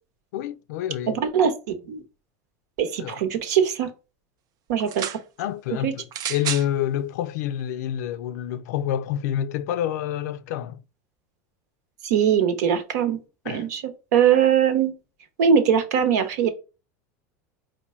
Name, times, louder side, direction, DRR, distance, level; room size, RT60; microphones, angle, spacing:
voice 1, 0.3-1.2 3.0-3.2 5.4-10.8 13.4-13.7, left 11 dB, 80° left, 0.4 m, -28 dB
voice 2, 1.1-2.0 2.8-3.9 4.7-5.1 5.8-5.9 12.0-13.2 13.4-13.8 14.1-14.9 15.4-16.5, right 8 dB, 80° right, 1.0 m, -21 dB
sound 1, 4.8-5.2 6.1-6.7 7.6-7.7, right 10 dB, 45° right, 0.5 m, -30 dB
4.6 x 2.2 x 4.2 m
supercardioid pair, 120°, 9 cm